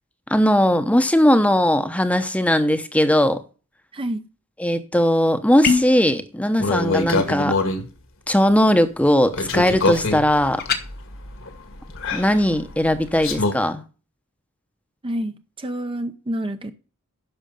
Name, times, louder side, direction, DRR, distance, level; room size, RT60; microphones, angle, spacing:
voice 1, 0.3-3.4 4.6-7.6 8.3-10.6 12.1-13.8, equal, 5° left, 0.8 m, -19 dB
voice 2, 3.9-4.2 15.0-16.7, right 1 dB, 25° right, 0.6 m, -28 dB
sound 1, 5.6-6.0 10.6-10.8, left 5 dB, 45° left, 1.1 m, -21 dB
sound 2, 6.6-7.8 9.3-13.5, left 2 dB, 65° left, 1.7 m, -25 dB
10.5 x 6.3 x 5.3 m
head